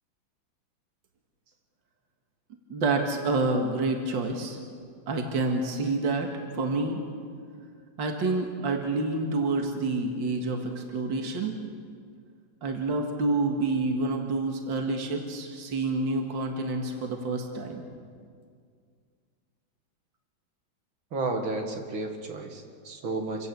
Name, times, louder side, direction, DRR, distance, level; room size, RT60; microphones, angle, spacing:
voice 1, 2.7-4.6 5.1-7.0 8.0-11.6 12.6-17.8, right 3 dB, 70° right, 3 dB, 2.5 m, -28 dB
voice 2, 21.1-23.5, right 3 dB, 85° right, 3 dB, 2.8 m, -32 dB
27.5 x 16.0 x 8.1 m, 2.1 s
omnidirectional pair, 2.1 m